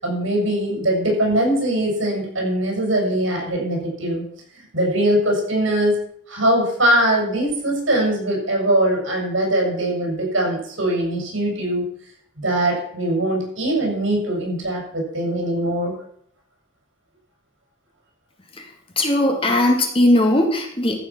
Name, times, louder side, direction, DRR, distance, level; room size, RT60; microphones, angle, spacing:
voice 1, 0.0-4.3 4.5-6.0 6.3-11.8 12.4-15.9, right 1 dB, 85° right, 0 dB, 6.7 m, -21 dB
voice 2, 18.5-21.0, left 1 dB, 30° left, 2 dB, 2.3 m, -19 dB
14.5 x 8.1 x 6.2 m, 0.63 s
head